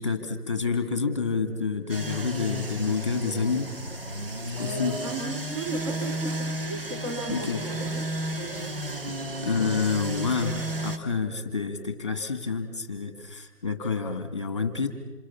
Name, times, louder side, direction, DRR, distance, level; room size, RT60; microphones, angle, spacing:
voice 1, 0.0-3.7 4.6-5.0 7.3-7.6 9.1-14.9, left 5 dB, 20° left, 8 dB, 2.2 m, -28 dB
sound 1, 1.9-11.0, right 1 dB, 35° right, 2.1 m, -33 dB
voice 2, 4.6-7.9 8.3-8.8, right 2 dB, 20° right, 1 dB, 3.3 m, -35 dB
27.5 x 23.5 x 7.2 m, 1.1 s
figure-of-eight pair, 180°, 47 cm